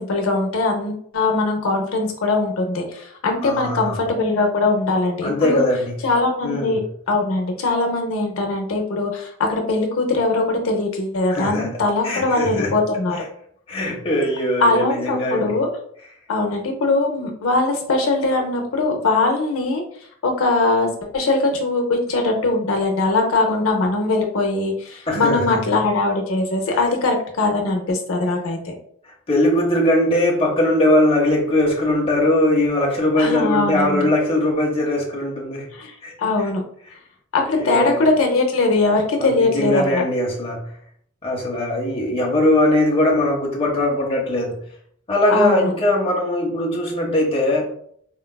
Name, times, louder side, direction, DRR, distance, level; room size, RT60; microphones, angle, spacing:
voice 1, 0.0-5.7 6.0-6.8 7.1-13.2 14.6-15.7 16.3-19.8 20.2-20.9 21.1-28.7 33.2-34.1 35.7-36.6 37.3-40.0 45.3-45.7, left 3 dB, 75° left, 2 dB, 0.6 m, -21 dB
voice 2, 3.4-4.0 5.2-6.0 6.4-6.8 11.3-11.7 12.0-12.7 13.7-15.5 25.1-25.8 26.7-26.8 29.3-35.7 36.0-36.1 37.5-38.1 39.2-40.7 41.2-44.6 45.1-47.7, left 1 dB, 25° left, -2 dB, 0.6 m, -20 dB
3.7 x 2.2 x 2.2 m, 0.65 s
head